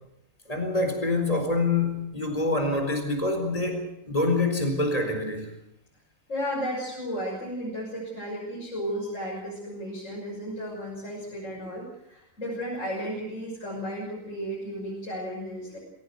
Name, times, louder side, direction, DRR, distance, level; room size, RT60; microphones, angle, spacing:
voice 1, 0.5-5.5, left 2 dB, 25° left, 5 dB, 4.4 m, -26 dB
voice 2, 6.3-15.8, equal, 55° left, -4 dB, 6.5 m, -34 dB
22.0 x 17.5 x 8.0 m, 0.82 s
omnidirectional pair, 1.6 m